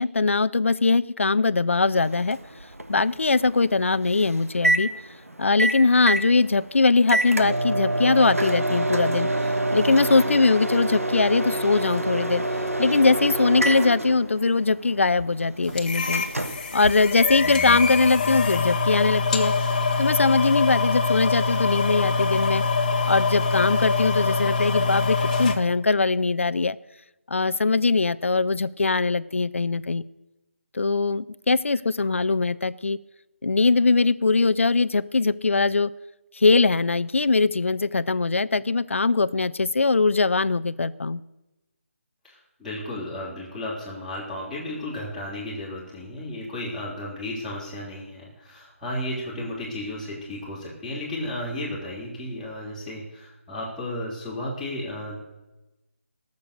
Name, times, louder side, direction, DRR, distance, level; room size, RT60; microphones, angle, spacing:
voice 1, 0.0-2.4 2.9-4.9 5.4-9.3 9.7-12.4 12.8-16.3 16.7-19.5 20.0-22.6 23.1-26.8 27.3-30.0 30.7-33.0 33.4-35.9 36.3-41.2, left 3 dB, 65° left, 17 dB, 0.6 m, -21 dB
Microwave oven, 2.0-17.7, right 1 dB, 85° right, 1.4 m, -28 dB
sound 1, 15.8-25.6, left 4 dB, 35° left, 1.3 m, -24 dB
voice 2, 42.2-55.2, left 1 dB, ahead, -16 dB, 3.4 m, -34 dB
17.5 x 6.9 x 6.6 m, 1.0 s
figure-of-eight pair, 155°, 7 cm